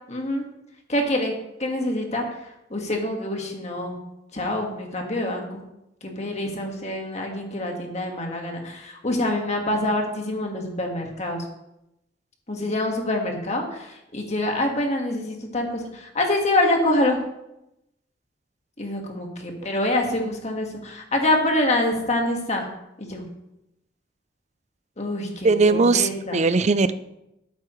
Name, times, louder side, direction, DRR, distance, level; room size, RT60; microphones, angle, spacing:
voice 1, 0.1-0.4 0.9-1.3 1.6-2.4 2.7-4.0 4.3-5.6 6.0-11.4 12.5-17.2 18.8-22.7 23.0-23.2 25.0-26.4, left 1 dB, 40° left, 2 dB, 1.7 m, -26 dB
voice 2, 25.4-26.9, right 4 dB, 40° right, 13 dB, 0.5 m, -19 dB
13.0 x 8.2 x 3.2 m, 0.88 s
head